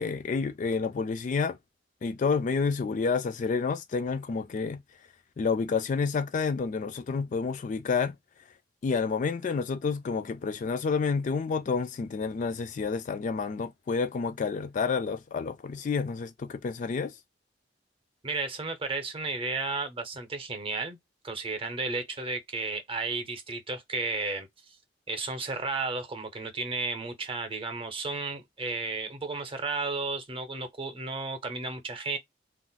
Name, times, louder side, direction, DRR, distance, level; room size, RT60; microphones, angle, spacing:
voice 1, 0.0-1.6 2.0-4.8 5.4-8.1 8.8-17.1, left 5 dB, 45° left, 0.3 m, -29 dB
voice 2, 18.2-21.0 21.2-24.8 25.1-32.2, right 3 dB, 30° right, 0.7 m, -33 dB
2.4 x 2.0 x 3.8 m
head